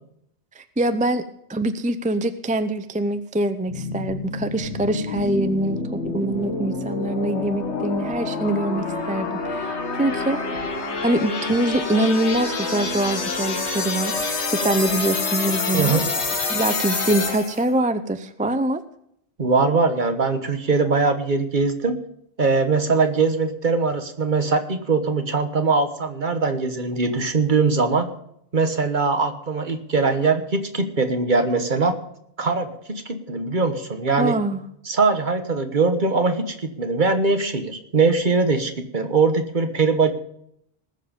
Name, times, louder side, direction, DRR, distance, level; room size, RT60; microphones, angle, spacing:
voice 1, 0.6-1.2 1.5-10.4 11.0-16.0 16.5-18.8 34.2-34.6, right 1 dB, 10° right, 10 dB, 0.5 m, -24 dB
sound 1, 3.7-17.7, left 3 dB, 85° left, 1.9 m, -27 dB
voice 2, 15.7-16.1 19.4-22.0 22.4-28.1 28.5-31.9 32.4-34.4 34.8-40.1, right 4 dB, 45° right, 7 dB, 1.4 m, -21 dB
19.5 x 7.4 x 5.2 m, 0.74 s
omnidirectional pair, 1.1 m